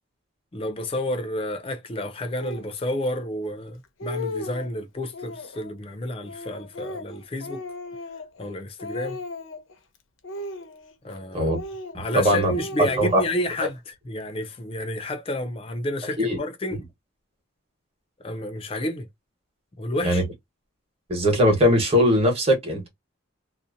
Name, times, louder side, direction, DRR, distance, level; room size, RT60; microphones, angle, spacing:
voice 1, 0.5-7.6 8.4-9.2 11.0-11.5 11.9-16.8 18.2-19.1 19.7-20.2, left 1 dB, 25° left, 0.4 m, -30 dB
Speech, 2.4-2.7 3.4-3.5 3.8-4.7 5.1-5.7 6.2-8.5 8.8-9.7 10.2-11.2 11.5-12.2 12.5-13.7, left 2 dB, 70° left, 0.7 m, -36 dB
voice 2, 11.9-12.5 12.8-13.2 16.2-16.4 20.0-20.2 21.1-22.9, equal, 30° right, 1.1 m, -20 dB
2.7 x 2.1 x 2.4 m
head